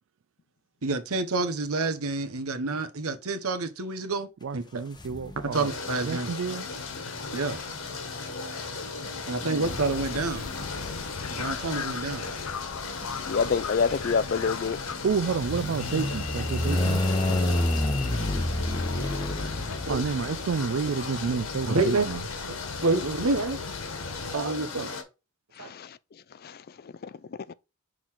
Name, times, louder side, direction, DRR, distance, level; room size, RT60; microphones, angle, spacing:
voice 1, 0.8-4.3 4.5-4.8 5.5-6.3 7.3-7.6 9.3-10.5 11.3-12.3 17.3-17.6 19.9-20.0 21.7-22.1 22.8-23.6 24.3-24.9 25.6-25.7, right 3 dB, 80° right, 1.0 m, -28 dB
voice 2, 4.4-5.7 6.0-6.6 9.4-9.7 15.0-17.0 19.9-22.2, right 5 dB, 60° right, 0.4 m, -30 dB
sound 1, 5.0-5.7 6.7-20.4, left 1 dB, 20° left, 0.8 m, -31 dB
sound 2, 5.5-25.0, left 4 dB, 65° left, 1.5 m, -37 dB
sound 3, 9.6-24.4, left 5 dB, 85° left, 0.8 m, -39 dB
voice 3, 13.2-14.8 25.5-27.5, left 5 dB, 45° left, 0.4 m, -29 dB
6.2 x 3.9 x 4.4 m
head